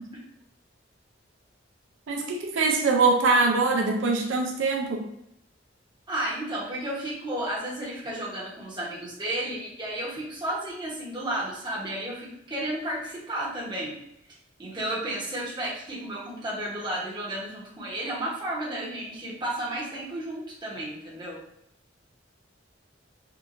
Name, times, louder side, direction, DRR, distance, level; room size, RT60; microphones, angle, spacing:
voice 1, 2.1-5.1, right 3 dB, 85° right, 2 dB, 0.5 m, -23 dB
voice 2, 6.1-14.0 14.6-21.4, right 1 dB, 25° right, -6 dB, 1.1 m, -32 dB
4.4 x 2.4 x 2.6 m, 0.79 s
head